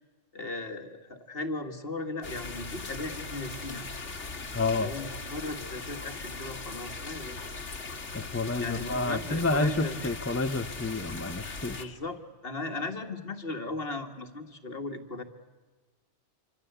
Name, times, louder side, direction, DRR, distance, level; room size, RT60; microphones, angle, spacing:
voice 1, 0.3-3.9 4.8-7.5 8.6-10.1 11.8-15.2, left 2 dB, 55° left, 6 dB, 2.1 m, -37 dB
sound 1, 2.2-11.9, left 3 dB, 75° left, 2.2 m, -39 dB
voice 2, 4.5-4.9 8.1-12.0, left 3 dB, 15° left, 8 dB, 0.9 m, -29 dB
26.5 x 25.5 x 8.1 m, 1.3 s
omnidirectional pair, 1.2 m